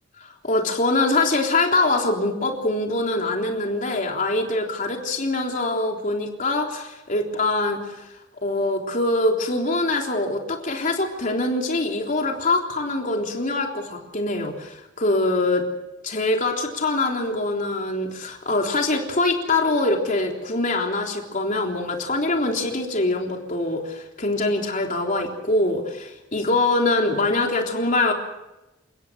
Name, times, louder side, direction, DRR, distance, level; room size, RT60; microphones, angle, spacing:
voice 1, 0.2-8.1 8.4-15.7 16.0-28.1, left 2 dB, 40° left, 1 dB, 3.6 m, -24 dB
29.5 x 16.5 x 6.4 m, 0.97 s
head